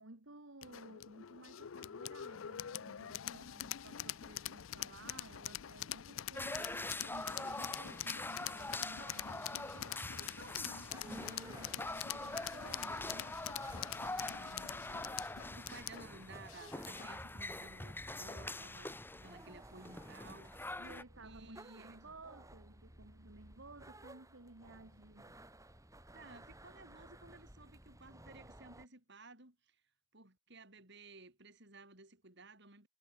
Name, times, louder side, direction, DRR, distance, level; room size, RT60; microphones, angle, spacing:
voice 1, 0.0-13.3 20.8-25.4, right 2 dB, 85° right, 2.3 m, -56 dB
sound 1, 0.6-17.1, left 11 dB, 90° left, 0.5 m, -45 dB
sound 2, 6.3-21.0, left 2 dB, 10° left, 1.9 m, -44 dB
sound 3, 10.7-28.9, right 1 dB, 15° right, 6.8 m, -57 dB
voice 2, 14.1-20.8 21.2-22.2 26.1-29.8 30.1-32.9, right 3 dB, 60° right, 7.4 m, -56 dB
head